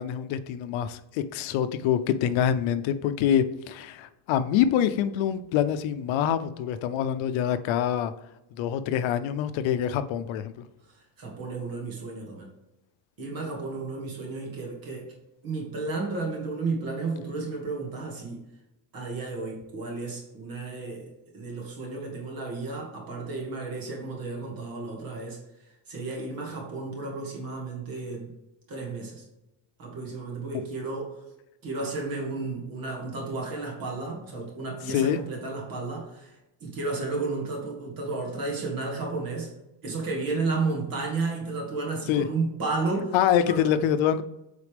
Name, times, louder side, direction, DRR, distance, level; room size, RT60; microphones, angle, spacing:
voice 1, 0.0-8.1 8.6-10.7 34.9-35.2 42.1-42.3 43.1-44.2, left 9 dB, 70° left, 12 dB, 0.7 m, -25 dB
voice 2, 10.8-12.5 13.2-15.1 15.4-18.4 18.9-28.3 28.7-29.2 29.8-31.2 31.6-39.5 39.8-43.2 43.4-43.7, right 3 dB, 45° right, -1 dB, 2.0 m, -33 dB
8.3 x 4.1 x 3.4 m, 0.92 s
cardioid pair, 160°, 48 cm